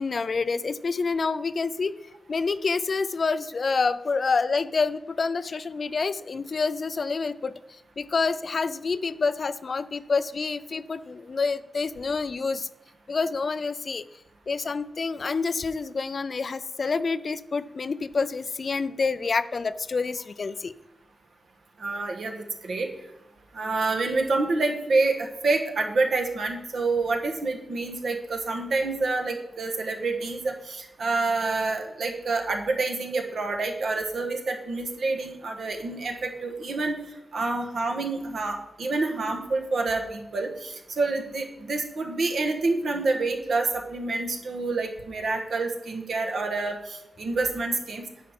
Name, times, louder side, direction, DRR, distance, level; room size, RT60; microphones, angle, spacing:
voice 1, 0.0-1.9 2.3-7.5 8.0-12.7 13.1-14.0 14.5-20.7, left 4 dB, 45° left, 14 dB, 0.3 m, -27 dB
voice 2, 21.8-22.9 23.5-36.9 37.3-48.0, right 3 dB, 65° right, 3 dB, 1.3 m, -27 dB
10.0 x 4.8 x 5.8 m, 0.89 s
wide cardioid pair, 145°, 0 cm